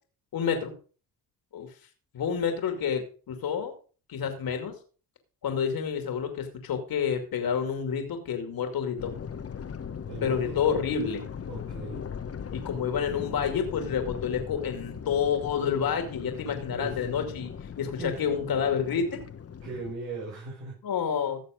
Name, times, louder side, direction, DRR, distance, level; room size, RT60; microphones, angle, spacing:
voice 1, 0.3-0.7 1.5-1.7 2.1-3.7 4.1-4.7 5.4-9.1 10.2-11.2 12.5-17.5 17.8-19.2 20.8-21.4, left 7 dB, 60° left, 5 dB, 2.5 m, -29 dB
sound 1, 9.0-19.9, left 7 dB, 35° left, 1.2 m, -39 dB
voice 2, 10.1-10.6 11.5-12.0 16.7-17.0 18.0-18.2 19.6-20.8, right 3 dB, 85° right, -5 dB, 5.9 m, -38 dB
16.0 x 6.7 x 5.1 m, 0.38 s
supercardioid pair, 75°, 41 cm